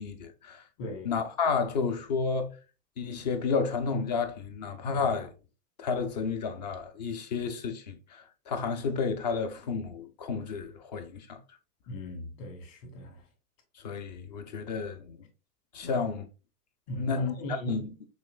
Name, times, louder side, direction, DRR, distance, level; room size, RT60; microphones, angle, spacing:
voice 1, 0.0-0.6 1.0-2.6 3.0-5.3 5.8-11.4 13.8-15.2 15.7-16.3 16.9-17.9, left 5 dB, 30° left, 0.3 m, -31 dB
voice 2, 0.8-1.1 11.9-13.2 15.8-16.0 16.9-17.7, equal, 50° left, 1.9 m, -39 dB
6.2 x 3.0 x 2.3 m
hypercardioid pair, 105°, 48 cm